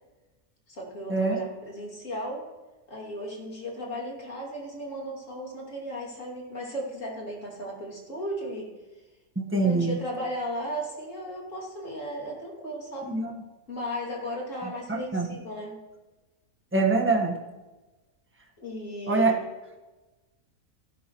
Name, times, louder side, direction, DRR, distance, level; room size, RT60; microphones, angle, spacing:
voice 1, 0.7-2.5 2.9-8.7 9.6-13.1 13.7-15.8 18.6-19.3, equal, 60° left, -2 dB, 3.1 m, -35 dB
voice 2, 9.3-10.0 13.0-13.3 14.6-15.3 16.7-17.4 19.1-19.3, right 3 dB, 10° right, 0 dB, 1.4 m, -24 dB
16.5 x 11.5 x 3.1 m, 1.2 s
omnidirectional pair, 1.5 m